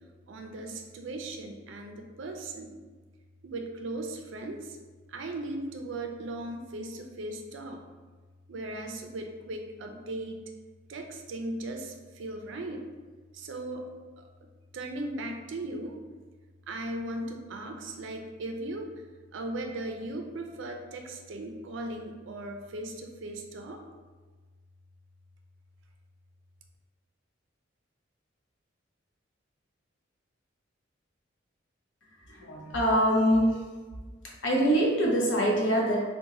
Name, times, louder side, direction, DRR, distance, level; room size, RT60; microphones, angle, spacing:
voice 1, 0.3-2.8 3.4-4.7 5.1-7.8 8.5-10.4 10.9-12.8 13.3-13.8 14.2-14.3 14.7-15.9 16.7-18.9 19.3-23.8, right 2 dB, 70° right, 4 dB, 0.4 m, -37 dB
voice 2, 32.3-33.6 34.4-36.0, equal, 70° left, -2 dB, 0.8 m, -24 dB
2.9 x 2.1 x 3.6 m, 1.4 s
head